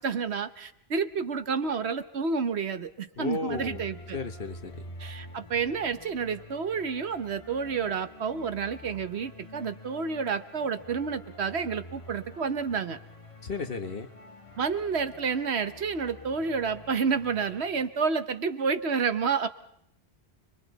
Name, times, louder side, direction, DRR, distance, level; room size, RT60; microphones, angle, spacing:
voice 1, 0.0-4.2 5.0-13.0 14.6-19.5, right 5 dB, 75° right, 10 dB, 1.3 m, -30 dB
voice 2, 3.2-3.8 4.1-4.8 13.4-14.1, left 4 dB, 55° left, 7 dB, 1.4 m, -34 dB
sound 1, 3.5-18.0, left 1 dB, 30° left, 1.6 m, -47 dB
29.5 x 23.0 x 4.1 m, 0.76 s
omnidirectional pair, 1.1 m